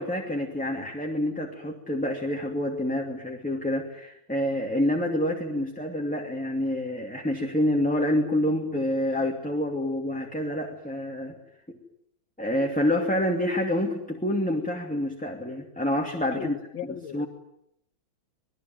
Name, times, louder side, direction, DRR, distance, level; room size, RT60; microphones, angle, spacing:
voice 1, 0.0-11.4 11.7-11.8 12.4-16.6 17.1-17.3, left 1 dB, 5° left, 2.4 m, -27 dB
voice 2, 16.3-17.3, left 8 dB, 70° left, 2.0 m, -37 dB
27.5 x 21.0 x 9.3 m
omnidirectional pair, 2.3 m